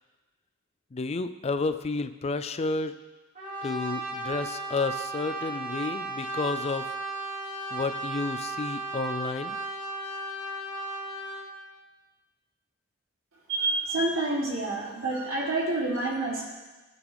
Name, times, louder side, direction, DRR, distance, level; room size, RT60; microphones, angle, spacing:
voice 1, 0.9-2.9 3.6-6.9 7.7-9.6, left 3 dB, 30° left, 10 dB, 0.4 m, -31 dB
Brass instrument, 3.3-11.5, right 2 dB, 35° right, 2.5 m, -35 dB
voice 2, 13.5-16.4, right 2 dB, 70° right, -8 dB, 3.1 m, -28 dB
16.5 x 6.0 x 3.5 m, 1.2 s
head